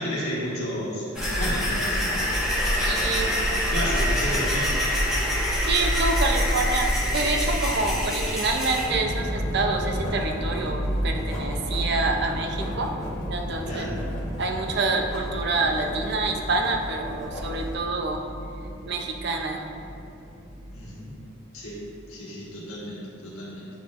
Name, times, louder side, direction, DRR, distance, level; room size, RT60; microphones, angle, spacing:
voice 1, 0.0-2.2 3.7-4.7 13.7-13.9 20.7-21.1 21.5-21.8 22.1-23.7, equal, 85° left, -7 dB, 1.4 m, -32 dB
sound 1, 1.1-8.9, equal, ahead, 0.9 m, -25 dB
voice 2, 2.8-3.9 4.3-4.4 5.6-12.9 13.3-13.9 14.4-18.2 18.9-19.6, right 3 dB, 50° right, 3 dB, 0.5 m, -27 dB
Writing, 8.5-17.8, left 1 dB, 15° left, 1.5 m, -37 dB
sound 2, 8.9-21.8, equal, 30° right, 1.0 m, -33 dB
9.5 x 4.3 x 2.5 m, 2.7 s
head